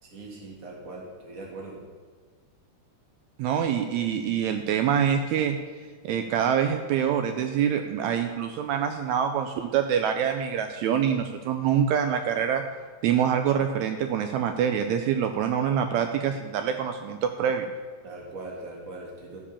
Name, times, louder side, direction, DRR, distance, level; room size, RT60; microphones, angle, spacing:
voice 1, 0.0-1.8 18.0-19.4, right 2 dB, 30° right, -1 dB, 2.0 m, -40 dB
voice 2, 3.4-5.6 6.0-12.6 13.0-17.7, right 8 dB, 80° right, 6 dB, 1.8 m, -25 dB
13.0 x 5.0 x 6.9 m, 1.5 s
omnidirectional pair, 3.4 m